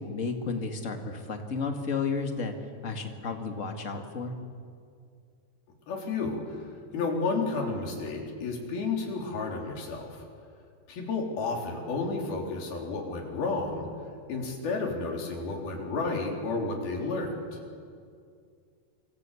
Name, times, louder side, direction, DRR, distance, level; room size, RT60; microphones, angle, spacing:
voice 1, 0.0-2.5 2.8-4.3, left 4 dB, 40° left, 4 dB, 1.1 m, -32 dB
voice 2, 5.9-6.7 6.9-10.2 10.9-13.9 14.3-17.6, left 3 dB, 65° left, 0 dB, 5.6 m, -31 dB
27.0 x 24.0 x 8.4 m, 2.3 s
omnidirectional pair, 4.7 m